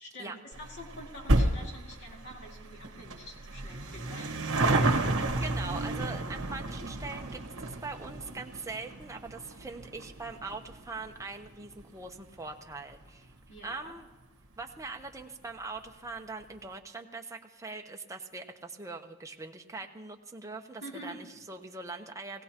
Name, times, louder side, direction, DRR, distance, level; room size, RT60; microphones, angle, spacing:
voice 1, 0.0-4.5 13.5-13.9 20.8-21.4, equal, 55° left, 0 dB, 2.3 m, -47 dB
sound 1, 0.5-13.3 13.6-13.7 14.5-14.6 14.8-14.9 15.2-15.3, right 2 dB, 60° right, 1.6 m, -32 dB
voice 2, 5.4-13.3 13.6-14.1 14.6-22.4, right 3 dB, 15° right, 3 dB, 0.8 m, -42 dB
19.0 x 16.5 x 2.9 m, 1.3 s
head